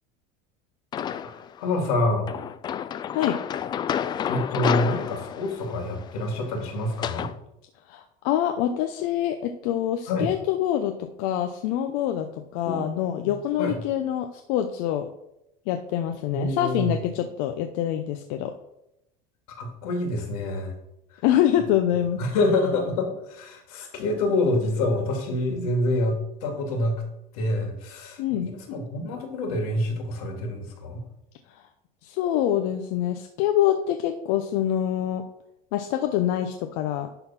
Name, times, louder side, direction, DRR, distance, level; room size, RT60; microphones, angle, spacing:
sound 1, 0.9-1.5 2.3-7.3, left 9 dB, 25° left, 0.3 m, -30 dB
voice 1, 1.6-2.3 4.3-7.3 10.1-10.3 12.6-13.8 16.3-17.0 19.5-20.7 21.1-21.2 22.2-27.0 27.3-31.0, left 2 dB, 85° left, 3 dB, 2.6 m, -27 dB
voice 2, 7.9-12.3 12.5-15.1 15.7-18.5 21.2-22.2 28.2-28.5 31.5-31.6 32.0-35.2 35.7-37.1, left 11 dB, 65° left, 6 dB, 0.7 m, -25 dB
11.0 x 3.9 x 5.8 m, 0.84 s
cardioid pair, 145°, 18 cm